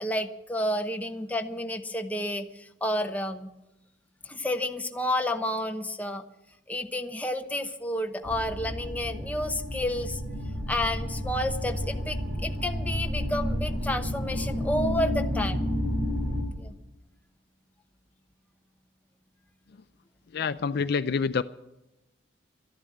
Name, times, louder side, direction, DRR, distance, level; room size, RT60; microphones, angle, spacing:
voice 1, 0.0-3.5 4.2-6.2 6.7-10.2 10.7-15.7 16.6-16.7, left 1 dB, 10° left, 5 dB, 0.9 m, -30 dB
sound 1, 8.2-16.4, left 1 dB, 40° right, 3.3 m, -31 dB
voice 2, 20.3-21.4, left 5 dB, 55° left, 12 dB, 0.4 m, -27 dB
13.0 x 11.0 x 8.5 m, 0.94 s
head